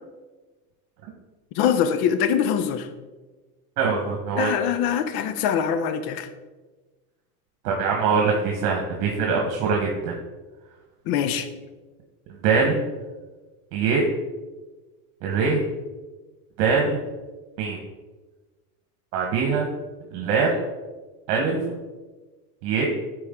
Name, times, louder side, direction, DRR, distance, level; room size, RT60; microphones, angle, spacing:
voice 1, 1.5-2.9 4.3-6.3 11.1-11.5, left 8 dB, 50° left, 9 dB, 0.9 m, -23 dB
voice 2, 3.8-4.5 7.6-10.1 12.3-12.8 13.7-14.1 15.2-15.6 16.6-17.0 17.6-17.8 19.1-19.7 20.1-20.6 21.3-21.7 22.6-22.9, right 5 dB, 70° right, 0 dB, 1.5 m, -23 dB
11.0 x 4.8 x 3.8 m, 1.2 s
supercardioid pair, 120°, 47 cm